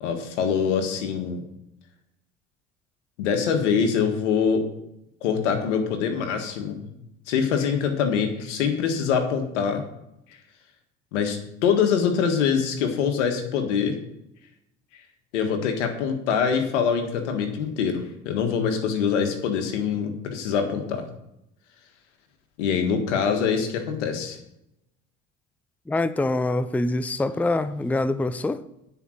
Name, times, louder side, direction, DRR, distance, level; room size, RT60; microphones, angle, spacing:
voice 1, 0.0-1.4 3.2-4.7 5.2-6.9 7.3-9.8 11.1-14.0 15.3-21.0 22.6-24.4, left 6 dB, 85° left, 1.6 m, -24 dB
voice 2, 25.9-28.6, left 2 dB, 5° left, 0.5 m, -25 dB
9.8 x 5.1 x 7.6 m
hypercardioid pair, 75°, 35 cm